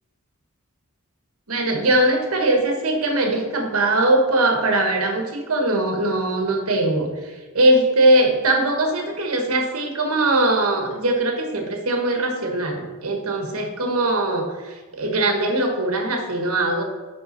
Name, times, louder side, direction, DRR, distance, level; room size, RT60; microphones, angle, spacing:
voice 1, 1.5-16.8, right 1 dB, 80° right, 3 dB, 1.3 m, -21 dB
5.5 x 5.3 x 5.3 m, 1.3 s
head